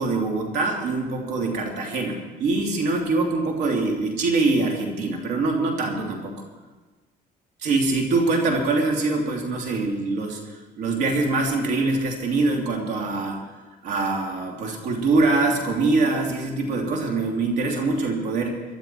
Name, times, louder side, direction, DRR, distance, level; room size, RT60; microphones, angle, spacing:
voice 1, 0.0-6.4 7.6-10.4 10.8-13.4 13.8-18.6, right 3 dB, 85° right, 1 dB, 3.0 m, -24 dB
20.5 x 12.0 x 4.5 m, 1.3 s
cardioid pair, 110°, 17 cm